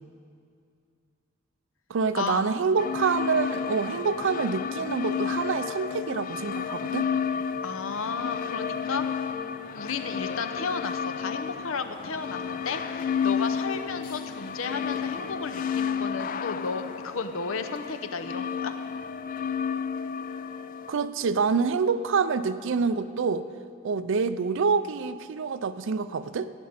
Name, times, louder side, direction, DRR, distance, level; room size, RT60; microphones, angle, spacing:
voice 1, 1.9-7.1 20.9-23.5 23.8-26.5, right 5 dB, 65° right, 13 dB, 0.4 m, -26 dB
sound 1, 2.8-21.1, left 6 dB, 40° left, 0.3 m, -31 dB
voice 2, 7.6-9.2 9.7-12.8 13.2-18.7, left 5 dB, 75° left, 9 dB, 0.7 m, -33 dB
14.5 x 5.3 x 9.5 m, 2.4 s
head